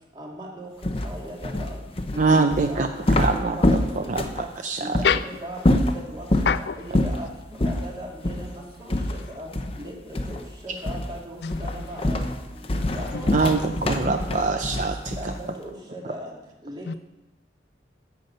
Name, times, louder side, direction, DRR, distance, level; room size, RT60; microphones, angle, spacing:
voice 1, 0.2-0.7 1.0-1.7 2.2-2.4 2.7-3.9 4.2-4.5 5.2-5.8 6.1-6.3 6.8-7.3 7.6-8.5 8.8-9.0 9.4-9.5 9.8-10.2 10.6-12.2 12.9-13.5 15.2-16.3 16.7-16.8, right 1 dB, 25° right, 2.3 m, -38 dB
sound 1, 0.8-4.5 4.9-5.1 5.6-6.5 6.9-7.2 7.6-7.8 8.2-8.5 8.9-9.9 10.1-10.5 10.8-11.2 11.5-15.4, left 1 dB, 30° left, 0.7 m, -25 dB
voice 2, 2.2-5.0 13.3-15.3, right 3 dB, 45° right, 0.5 m, -24 dB
voice 3, 6.5-6.8 9.0-9.4 11.4-12.0 12.8-13.7 14.0-14.3 16.9-17.0, left 6 dB, 65° left, 0.4 m, -28 dB
10.5 x 5.6 x 7.9 m
head